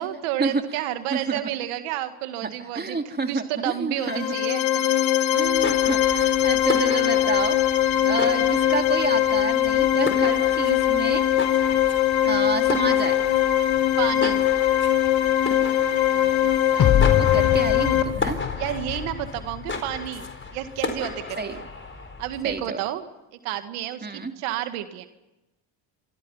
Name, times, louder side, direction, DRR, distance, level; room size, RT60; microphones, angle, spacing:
voice 1, 0.0-3.0 3.3-4.7 8.0-8.1 11.6-11.8 14.0-14.4 18.6-21.6 22.2-23.0 23.4-25.1, right 12 dB, 85° right, 8 dB, 2.0 m, -30 dB
voice 2, 2.7-4.3 5.3-7.6 8.0-11.3 12.2-13.2 16.1-18.4 21.4-21.6 22.4-22.8 24.0-24.3, right 4 dB, 20° right, 5 dB, 2.9 m, -29 dB
sound 1, 4.0-18.0, left 11 dB, 65° left, 2.6 m, -21 dB
sound 2, 5.4-22.7, left 3 dB, 25° left, 4.4 m, -35 dB
sound 3, 16.8-20.1, left 10 dB, 40° left, 1.1 m, -25 dB
27.0 x 25.0 x 5.7 m, 0.99 s
supercardioid pair, 90°, 49 cm